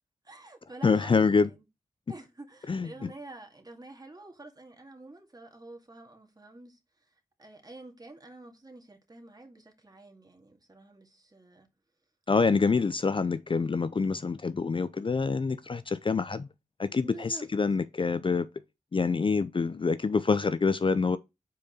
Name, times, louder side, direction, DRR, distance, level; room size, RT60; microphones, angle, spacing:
voice 1, 0.2-1.6 2.1-6.8 7.1-7.2 7.4-11.7 17.0-17.5, right 2 dB, 25° right, 2.1 m, -48 dB
voice 2, 0.8-1.5 2.7-3.1 12.3-16.5 16.8-18.5 18.9-21.2, left 4 dB, 35° left, 0.5 m, -26 dB
5.2 x 4.6 x 5.4 m
cardioid pair, 50°, 14 cm